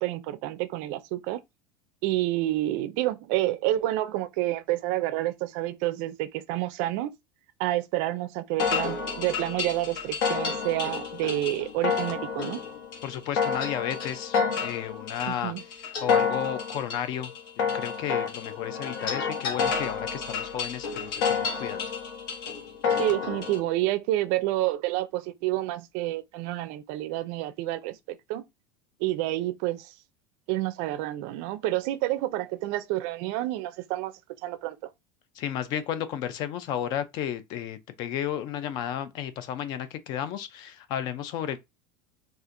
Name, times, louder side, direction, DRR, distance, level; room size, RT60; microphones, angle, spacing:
voice 1, 0.0-1.4 2.0-7.1 7.6-12.6 15.3-15.6 23.0-28.5 29.0-30.0 30.5-34.1 34.4-34.8, right 15 dB, 55° right, 0.4 m, -29 dB
sound 1, 8.6-23.6, left 6 dB, 85° left, 1.1 m, -29 dB
voice 2, 13.0-14.4 14.6-15.5 16.0-17.3 17.6-21.8 35.4-41.6, left 10 dB, 40° left, 0.4 m, -33 dB
4.2 x 2.5 x 2.5 m
cardioid pair, 170°, 11 cm